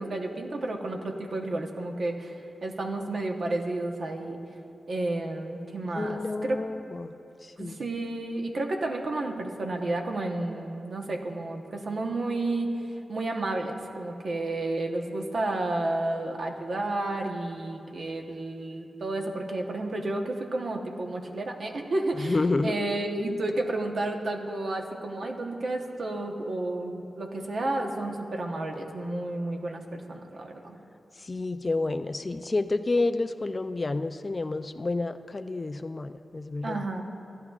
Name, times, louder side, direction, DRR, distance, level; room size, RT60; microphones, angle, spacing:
voice 1, 0.0-2.3 2.6-4.4 4.9-6.6 7.6-12.7 13.1-22.4 22.6-30.8 36.6-37.0, right 2 dB, 60° right, 2 dB, 1.0 m, -31 dB
voice 2, 6.0-7.1 7.4-7.8 22.2-22.7 31.2-36.9, left 3 dB, 35° left, 10 dB, 0.3 m, -29 dB
16.0 x 11.0 x 2.4 m, 2.7 s
wide cardioid pair, 105°, 0 cm